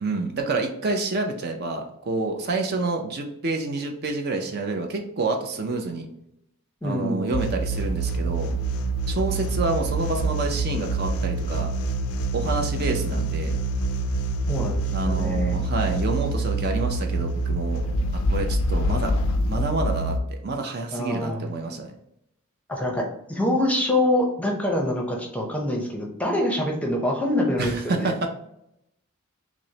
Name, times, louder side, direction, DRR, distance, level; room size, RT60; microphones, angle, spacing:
voice 1, 0.0-6.1 6.8-8.5 9.1-11.7 12.3-13.6 14.9-17.8 18.1-19.1 19.4-20.2 20.4-21.9 27.6-28.3, right 3 dB, 45° right, 3 dB, 0.5 m, -28 dB
voice 2, 6.8-7.4 14.5-15.6 20.9-21.5 22.7-28.1, left 1 dB, 5° left, 0 dB, 0.6 m, -25 dB
sound 1, 7.3-20.2, right 2 dB, 70° left, 0.4 m, -26 dB
6.0 x 2.0 x 2.8 m, 0.79 s
head